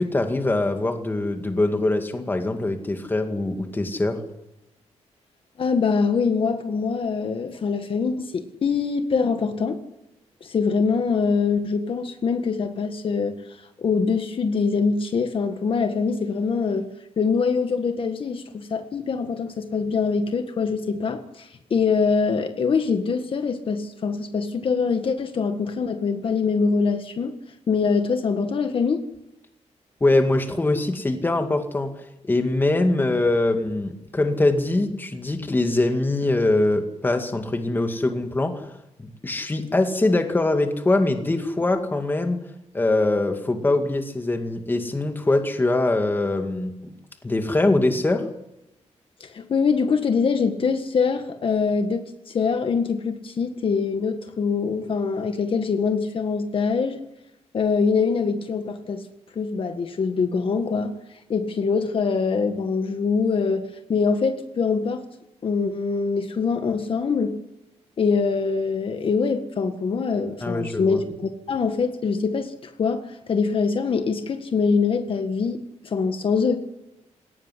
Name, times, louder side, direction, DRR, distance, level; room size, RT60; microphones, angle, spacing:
voice 1, 0.0-4.2 30.0-31.9 32.2-38.7 39.0-42.4 42.7-46.9 47.2-48.3 70.4-71.0, left 2 dB, 15° left, 6 dB, 2.2 m, -23 dB
voice 2, 5.6-9.8 10.4-13.4 13.8-16.9 17.2-27.3 27.7-29.0 49.2-57.0 57.5-59.0 59.4-60.9 61.3-63.6 63.9-65.0 65.4-67.3 68.0-73.0 73.3-76.6, left 5 dB, 50° left, 7 dB, 1.7 m, -24 dB
21.0 x 18.5 x 9.9 m, 0.91 s
wide cardioid pair, 145°, 12 cm